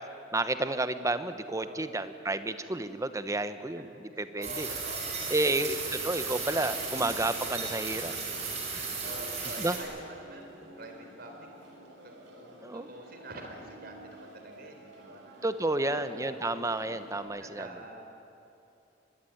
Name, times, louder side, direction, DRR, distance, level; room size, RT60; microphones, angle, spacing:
voice 1, 0.3-4.7 5.3-8.1 9.6-9.8 12.6-12.9 15.4-17.7, right 2 dB, 15° right, 11 dB, 1.1 m, -31 dB
voice 2, 1.6-2.0 3.8-5.9 8.1-10.5 10.8-11.7 12.0-12.1 12.4-15.5 15.7-16.5 17.4-18.0, right 2 dB, 55° right, 3 dB, 4.4 m, -47 dB
sound 1, 4.4-9.8, right 4 dB, 35° right, 6.1 m, -35 dB
sound 2, 5.8-17.2, right 1 dB, 70° right, 6.4 m, -51 dB
24.5 x 21.5 x 9.4 m, 2.8 s
head